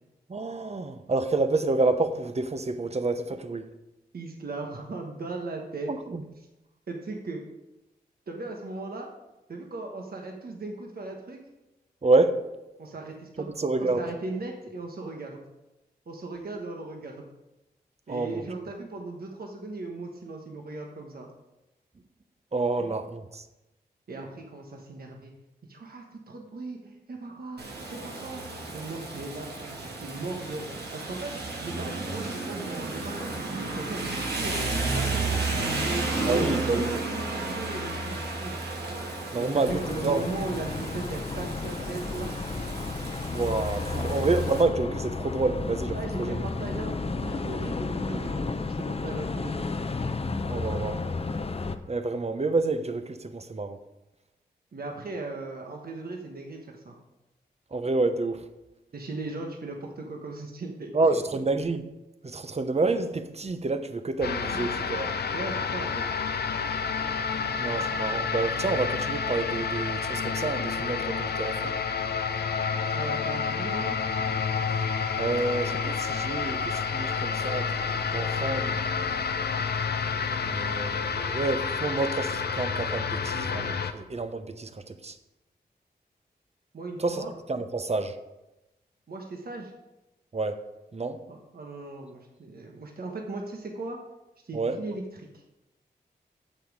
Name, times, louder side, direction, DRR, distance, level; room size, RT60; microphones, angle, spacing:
voice 1, 0.3-3.7 5.9-6.2 12.0-12.5 13.6-14.0 18.1-18.4 22.5-23.4 36.3-37.0 39.3-40.2 43.3-46.4 50.5-51.1 51.9-53.8 57.7-58.4 60.9-61.9 62.2-65.1 67.6-71.8 75.2-79.1 80.4-85.2 87.0-87.2 87.5-88.2 90.3-90.6 90.9-91.2 94.5-94.8, right 3 dB, 40° right, 0.9 m, -28 dB
voice 2, 4.1-5.9 6.9-7.4 8.3-9.1 9.5-11.4 12.8-13.5 13.8-15.4 16.1-17.3 18.1-21.3 22.8-22.9 24.1-25.3 25.6-28.4 28.7-31.3 31.6-38.6 39.3-42.5 43.9-44.3 45.9-49.7 54.7-57.0 58.9-60.9 64.5-64.7 65.3-66.1 72.9-74.0 86.7-87.3 89.1-89.7 91.3-94.0 94.4-95.0 95.3-95.4, right 3 dB, 65° right, 1.3 m, -38 dB
Rain, 27.6-44.6, right 3 dB, 80° right, 1.7 m, -33 dB
sound 1, 39.7-51.8, left 3 dB, 35° left, 0.7 m, -32 dB
sound 2, 64.2-83.9, left 5 dB, 75° left, 0.7 m, -29 dB
8.9 x 7.3 x 4.8 m
cardioid pair, 50°, 17 cm